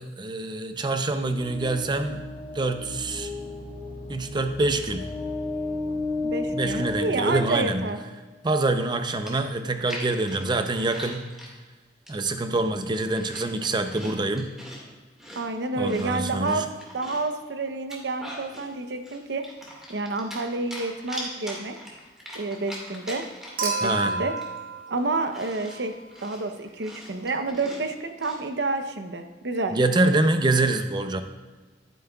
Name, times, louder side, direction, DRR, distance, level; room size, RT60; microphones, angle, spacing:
voice 1, 0.0-2.2 2.5-3.3 4.1-5.1 6.5-7.9 8.4-11.3 12.1-14.5 15.8-16.7 23.8-24.2 29.7-31.2, right 2 dB, 25° right, 7 dB, 0.6 m, -25 dB
sound 1, 1.2-8.1, left 2 dB, 45° left, 2.0 m, -33 dB
voice 2, 6.2-8.0 15.3-16.7 16.9-19.5 19.9-21.7 22.3-23.2 23.6-24.3 24.9-29.8, right 3 dB, 80° right, 7 dB, 0.8 m, -29 dB
Chewing mastication, 9.3-11.5 12.1-12.4 12.8-14.8 15.2-17.3 17.7-18.7 19.0-20.4 20.7-23.7 24.0-24.1 24.4-28.4, equal, 5° right, 1.9 m, -41 dB
Human group actions / Chink clink / Liquid, 23.6-26.0 27.5-27.6, right 3 dB, 55° right, 1.4 m, -31 dB
11.5 x 9.3 x 2.3 m, 1.4 s
head